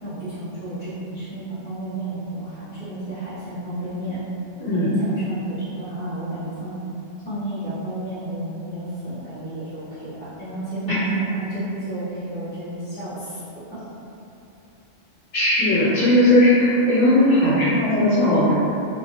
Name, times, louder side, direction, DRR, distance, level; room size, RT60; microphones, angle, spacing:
voice 1, 0.0-4.2 4.7-6.8 7.2-13.4 13.7-13.8, right 1 dB, 10° left, -16 dB, 0.9 m, -31 dB
voice 2, 4.6-4.9 15.3-18.5, left 1 dB, 70° left, -13 dB, 1.3 m, -17 dB
2.6 x 2.4 x 2.7 m, 2.9 s
omnidirectional pair, 1.2 m